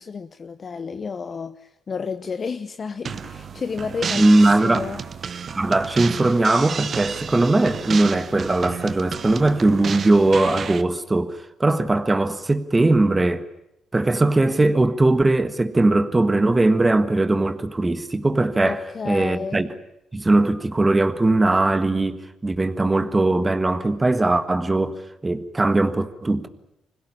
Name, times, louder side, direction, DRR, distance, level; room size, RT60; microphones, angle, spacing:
voice 1, 0.0-5.0 18.6-19.6, left 5 dB, 40° left, 0.9 m, -31 dB
sound 1, 3.1-10.8, right 6 dB, 50° right, 1.0 m, -31 dB
voice 2, 4.2-4.8 5.5-13.4 13.9-19.7 20.1-26.5, right 2 dB, 20° right, 1.5 m, -20 dB
25.5 x 17.0 x 10.0 m
cardioid pair, 90°, 0 cm